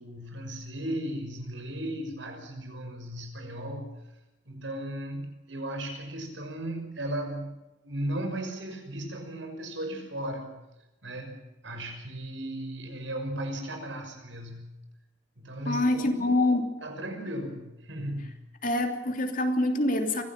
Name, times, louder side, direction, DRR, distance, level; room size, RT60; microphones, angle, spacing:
voice 1, 0.0-3.9 4.5-7.6 7.8-10.6 11.0-14.7 15.4-16.4 16.8-18.3, right 1 dB, 85° right, 4 dB, 6.1 m, -36 dB
voice 2, 15.6-16.7 18.6-20.2, left 1 dB, 45° left, 5 dB, 3.1 m, -25 dB
24.5 x 17.0 x 7.4 m, 0.96 s
head